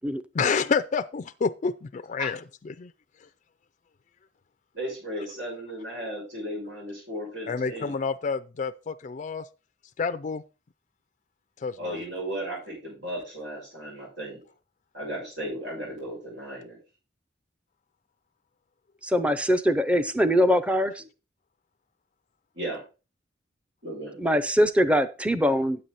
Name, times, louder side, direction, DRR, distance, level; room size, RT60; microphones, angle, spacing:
voice 1, 0.3-2.4 2.6-2.9 7.5-9.4 10.0-10.4 11.6-12.0, left 5 dB, 40° left, 0.4 m, -28 dB
voice 2, 4.7-8.0 11.8-14.4 14.9-16.8 22.5-22.8 23.8-24.1, right 1 dB, 90° right, 6.9 m, -35 dB
voice 3, 19.1-20.9 24.2-25.8, equal, 5° right, 0.6 m, -22 dB
9.5 x 7.8 x 4.1 m
head